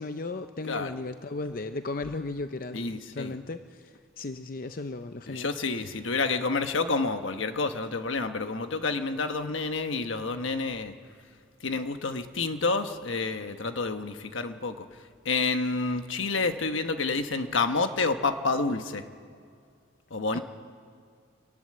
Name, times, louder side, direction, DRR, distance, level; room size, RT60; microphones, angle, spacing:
voice 1, 0.0-5.5 20.3-20.4, left 3 dB, 45° left, 9 dB, 0.6 m, -36 dB
voice 2, 2.7-3.4 5.3-10.9 11.6-19.0 20.1-20.4, left 3 dB, 80° left, 8 dB, 1.2 m, -29 dB
25.0 x 18.5 x 7.8 m, 2.2 s
head